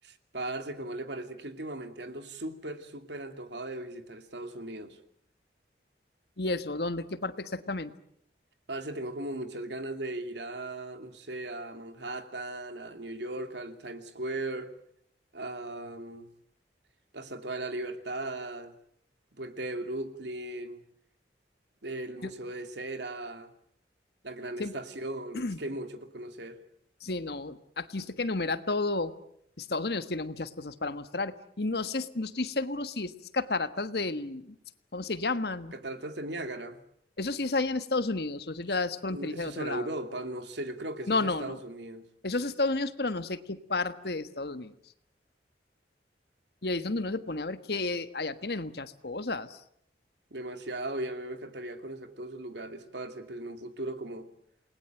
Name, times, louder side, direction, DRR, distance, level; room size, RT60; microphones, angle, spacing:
voice 1, 0.0-5.0 8.7-14.7 15.3-16.3 17.1-18.7 19.3-20.8 21.8-23.5 24.2-26.6 35.7-36.8 39.1-42.1 50.3-54.3, right 1 dB, 80° right, 2.7 m, -38 dB
voice 2, 6.4-7.9 22.2-22.3 24.6-24.7 25.3-25.6 27.0-29.1 29.6-34.6 34.9-35.7 37.2-39.9 41.1-41.6 42.2-44.7 46.6-49.6, left 3 dB, 65° left, 1.4 m, -32 dB
28.5 x 20.5 x 9.2 m
head